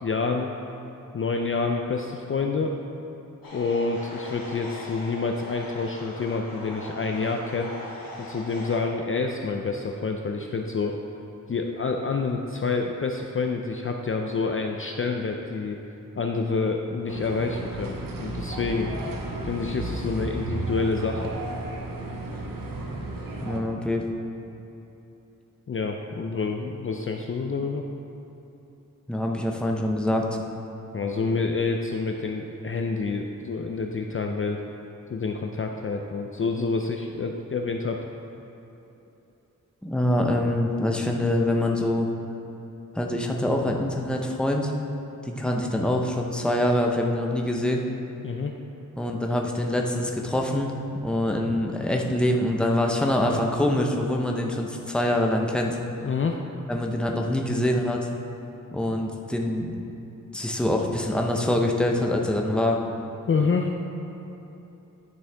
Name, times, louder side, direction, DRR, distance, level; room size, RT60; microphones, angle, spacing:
voice 1, 0.0-0.5 1.1-2.8 3.5-7.7 8.2-11.0 11.5-15.8 16.2-18.9 19.4-21.3 25.7-27.9 30.9-34.6 35.1-38.0 48.2-48.5 56.0-56.4 63.3-63.8, left 4 dB, 40° left, 3 dB, 0.4 m, -28 dB
sound 1, 3.4-8.8, left 1 dB, 90° left, 1.9 m, -40 dB
sound 2, 17.1-23.6, right 2 dB, 80° right, 0.9 m, -33 dB
voice 2, 23.4-24.0 29.1-30.2 39.8-42.1 42.9-44.7 45.2-47.9 49.0-50.7 51.0-55.8 56.7-58.1 58.7-59.7 60.3-62.8, left 1 dB, 5° left, 0 dB, 0.7 m, -25 dB
10.5 x 6.2 x 3.4 m, 3.0 s
wide cardioid pair, 110°, 33 cm